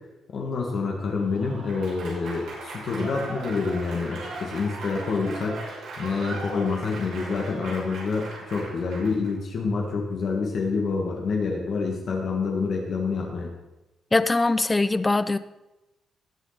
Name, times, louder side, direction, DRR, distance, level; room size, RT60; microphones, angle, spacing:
voice 1, 0.3-5.6 6.0-13.5, left 4 dB, 50° left, 0 dB, 2.0 m, -27 dB
Applause / Crowd, 1.1-9.3, right 2 dB, 85° right, 4.3 m, -38 dB
voice 2, 14.1-15.4, left 2 dB, 15° left, 14 dB, 0.4 m, -22 dB
18.0 x 7.4 x 4.1 m, 0.99 s
cardioid pair, 170°, 0 cm